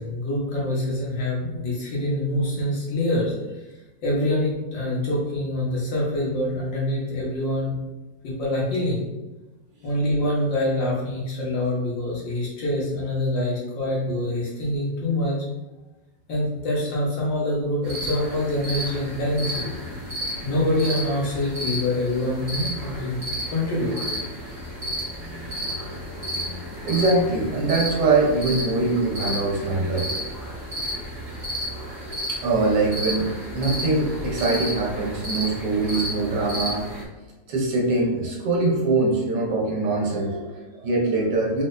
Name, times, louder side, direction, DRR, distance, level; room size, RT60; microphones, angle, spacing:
voice 1, 0.0-3.3 4.0-7.8 8.2-9.0 9.8-15.4 16.3-19.6 20.4-23.2 23.5-24.0, left 1 dB, 85° left, -5 dB, 2.1 m, -25 dB
sound 1, 17.8-37.0, equal, 35° right, 1.6 m, -32 dB
voice 2, 26.1-26.4 26.8-30.2 32.3-36.9 37.5-41.6, right 3 dB, 70° right, -2 dB, 1.6 m, -23 dB
4.4 x 4.0 x 2.6 m, 1.1 s
omnidirectional pair, 2.0 m